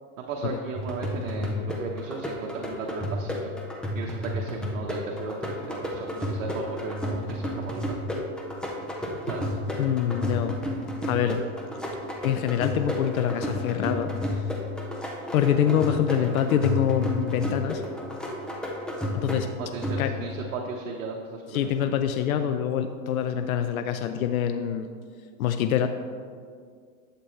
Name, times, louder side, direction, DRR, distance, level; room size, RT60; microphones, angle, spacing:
voice 1, 0.2-3.5 3.9-8.0 9.0-9.6 19.6-22.0, right 4 dB, 75° right, 0 dB, 1.2 m, -36 dB
sound 1, 0.7-20.4, left 1 dB, ahead, 0.4 m, -32 dB
voice 2, 9.8-10.6 11.0-11.4 12.2-14.1 15.3-17.8 19.1-19.5 20.0-20.1 21.5-24.9 25.4-25.9, left 9 dB, 90° left, 8 dB, 0.6 m, -25 dB
11.5 x 7.6 x 3.2 m, 2.1 s
supercardioid pair, 145°, 41 cm